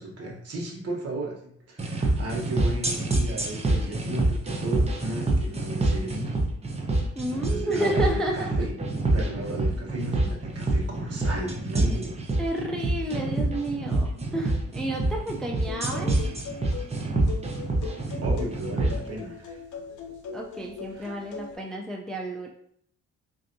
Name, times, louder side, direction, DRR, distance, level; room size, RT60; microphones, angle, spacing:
voice 1, 0.0-6.4 7.3-8.7 9.1-12.1 18.2-19.6 20.9-21.2, right 1 dB, 55° right, 0 dB, 1.1 m, -34 dB
sound 1, 1.8-19.0, right 2 dB, 20° right, 0.8 m, -26 dB
voice 2, 7.2-8.5 12.4-16.2 20.3-22.5, right 1 dB, ahead, 0 dB, 0.4 m, -31 dB
sound 2, 15.7-21.5, left 5 dB, 80° left, 0.7 m, -40 dB
4.3 x 2.7 x 2.6 m, 0.66 s
cardioid pair, 90°, 30 cm